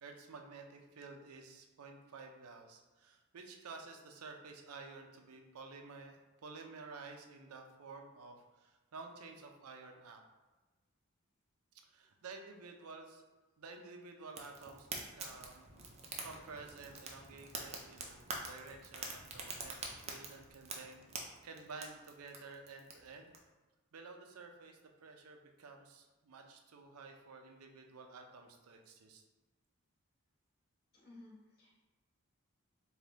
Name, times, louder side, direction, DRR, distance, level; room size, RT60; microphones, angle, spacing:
voice 1, 0.0-10.2 11.8-13.3 13.6-15.7 16.2-18.2 18.4-23.3 23.9-29.2, right 4 dB, 85° right, 3 dB, 0.5 m, -52 dB
Fire, 14.3-23.4, right 3 dB, 30° right, 0.4 m, -46 dB
voice 2, 30.9-31.7, left 2 dB, 45° left, -6 dB, 1.2 m, -56 dB
3.4 x 2.6 x 3.8 m, 1.2 s
head